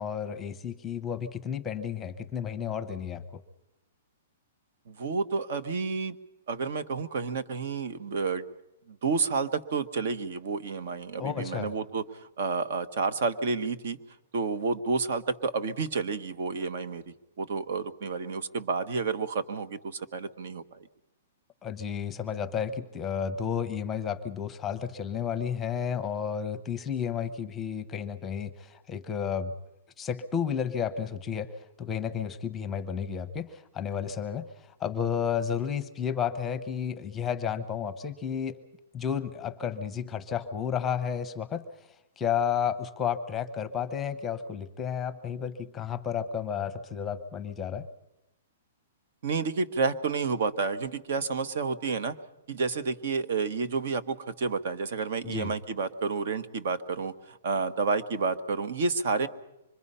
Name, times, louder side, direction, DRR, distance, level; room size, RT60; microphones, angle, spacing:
voice 1, 0.0-3.4 11.2-11.7 21.6-29.5 30.0-31.5 31.8-38.6 38.9-41.6 42.2-47.9 55.2-55.5, left 8 dB, 10° left, 8 dB, 0.9 m, -32 dB
voice 2, 4.9-6.2 6.5-8.4 8.9-14.0 14.3-17.0 17.4-20.9 49.2-52.1 52.5-59.3, right 4 dB, 55° right, 12 dB, 1.3 m, -30 dB
25.5 x 22.5 x 5.6 m, 0.91 s
hypercardioid pair, 170°, 0 cm